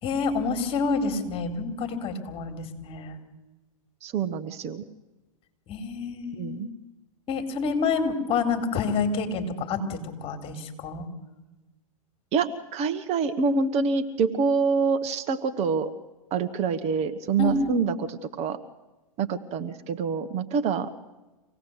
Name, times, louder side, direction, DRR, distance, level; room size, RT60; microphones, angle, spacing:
voice 1, 0.0-3.2 5.7-6.7 7.3-11.1 17.4-17.9, left 4 dB, 30° left, 6 dB, 4.0 m, -28 dB
voice 2, 4.0-4.8 6.4-6.7 12.3-15.9 16.3-18.6 19.2-20.9, right 5 dB, 35° right, 11 dB, 1.3 m, -26 dB
26.0 x 18.0 x 8.1 m, 1.1 s
hypercardioid pair, 110°, 19 cm